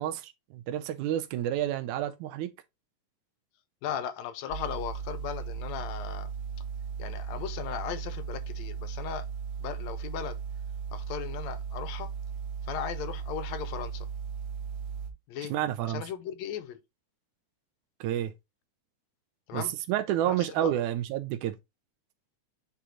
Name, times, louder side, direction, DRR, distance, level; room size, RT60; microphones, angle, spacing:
voice 1, 0.0-2.5 15.5-16.0 18.0-18.3 19.5-21.5, right 12 dB, 85° right, 2.2 m, -30 dB
voice 2, 3.8-6.3 7.0-9.3 9.6-10.4 10.9-12.1 12.6-14.1 15.3-15.5 15.8-16.8 19.5-19.7 20.3-20.7, left 9 dB, 75° left, 1.8 m, -37 dB
sound 1, 4.5-15.1, right 6 dB, 55° right, 1.4 m, -37 dB
8.3 x 3.7 x 3.0 m
omnidirectional pair, 3.5 m